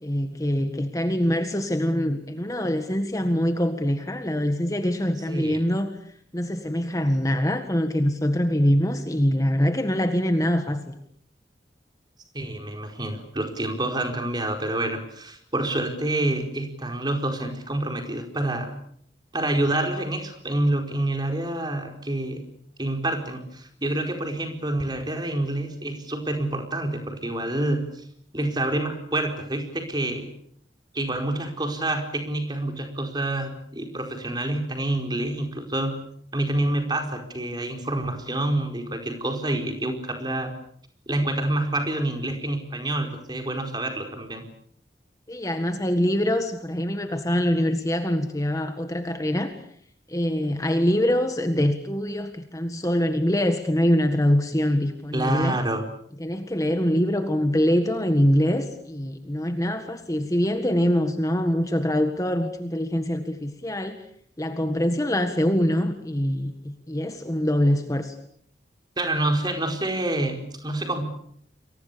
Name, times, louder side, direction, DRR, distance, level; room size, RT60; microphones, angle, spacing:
voice 1, 0.0-5.9 6.3-10.9 45.3-49.5 50.1-55.6 56.2-64.0 64.4-68.2, equal, 20° left, 7 dB, 1.7 m, -24 dB
voice 2, 5.3-5.6 12.3-18.7 19.3-22.5 22.8-27.9 28.3-30.3 30.9-36.0 36.3-40.5 41.1-44.5 55.1-55.8 69.0-71.0, right 1 dB, 25° right, 4 dB, 4.6 m, -27 dB
29.5 x 23.5 x 7.0 m, 0.66 s
head